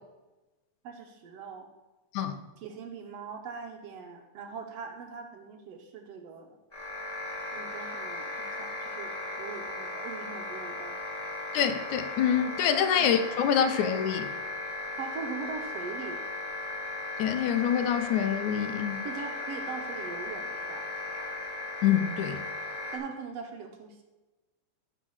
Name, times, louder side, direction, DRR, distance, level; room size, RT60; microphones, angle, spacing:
voice 1, 0.8-1.7 2.6-6.6 7.5-11.0 13.0-13.2 15.0-16.3 19.0-20.9 22.9-24.0, right 5 dB, 65° right, 4 dB, 1.9 m, -41 dB
sound 1, 6.7-23.0, left 2 dB, 10° left, 3.0 m, -37 dB
voice 2, 11.5-14.3 17.2-19.0 21.8-22.4, left 8 dB, 80° left, 9 dB, 2.2 m, -26 dB
14.5 x 4.9 x 6.3 m, 1.1 s
omnidirectional pair, 3.4 m